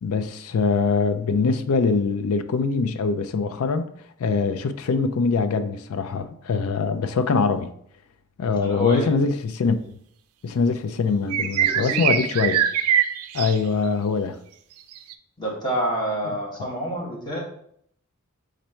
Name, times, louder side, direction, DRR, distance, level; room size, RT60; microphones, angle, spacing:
voice 1, 0.0-3.9 4.2-7.7 8.4-9.8 10.4-12.6 13.3-14.4, left 4 dB, 75° left, 0.4 m, -23 dB
voice 2, 8.5-9.1 11.7-12.2 15.4-17.4, right 1 dB, 20° left, 1.3 m, -28 dB
sound 1, 11.3-13.6 15.0-15.1, right 9 dB, 85° right, 0.4 m, -23 dB
4.3 x 2.6 x 4.3 m
head